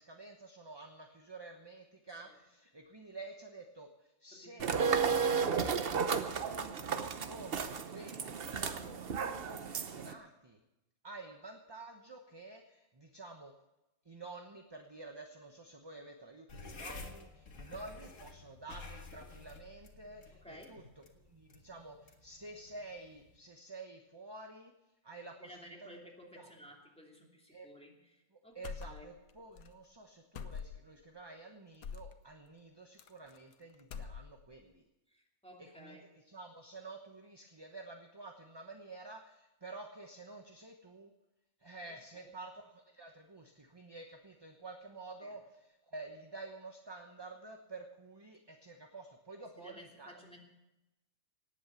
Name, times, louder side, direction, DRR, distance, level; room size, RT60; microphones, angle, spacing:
voice 1, 0.0-5.6 5.8-9.0 9.4-10.6 11.0-13.5 14.0-24.7 25.0-25.9 26.3-26.5 27.5-27.7 28.3-34.9 35.6-41.1 41.6-50.2, right 3 dB, 20° right, 4 dB, 1.0 m, -50 dB
voice 2, 4.3-5.1 20.3-20.9 25.4-28.6 28.9-29.1 35.1-36.1 42.2-42.3 45.2-45.3 49.6-50.4, equal, 5° left, -1 dB, 2.7 m, -54 dB
sound 1, 4.6-10.1, right 6 dB, 50° right, 1.0 m, -33 dB
sound 2, 16.5-23.4, left 3 dB, 65° left, 2.0 m, -51 dB
sound 3, 28.6-29.3 29.6-29.7 30.3-31.0 31.8-32.2 33.0-33.5 33.8-34.5, left 6 dB, 85° left, 1.3 m, -44 dB
18.5 x 8.7 x 7.0 m, 0.95 s
omnidirectional pair, 1.5 m